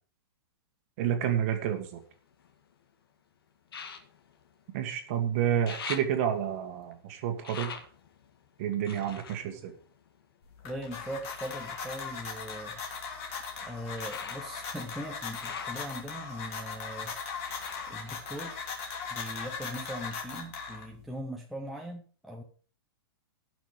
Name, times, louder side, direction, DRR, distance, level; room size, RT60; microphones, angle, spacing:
voice 1, 1.0-2.0 4.7-7.7 8.6-9.7, right 9 dB, 30° right, 7 dB, 1.8 m, -29 dB
sound 1, 1.5-2.8 3.7-5.2 5.4-10.6 11.2-19.1 19.4-20.2 20.7-20.8, left 6 dB, 65° left, 2.2 m, -46 dB
sound 2, 10.4-21.1, left 5 dB, 30° left, 3.2 m, -39 dB
voice 2, 10.6-12.8 13.6-17.6 17.9-18.6 19.1-22.4, equal, ahead, -1 dB, 0.6 m, -40 dB
17.0 x 6.2 x 5.0 m, 0.41 s
hypercardioid pair, 180°, 13 cm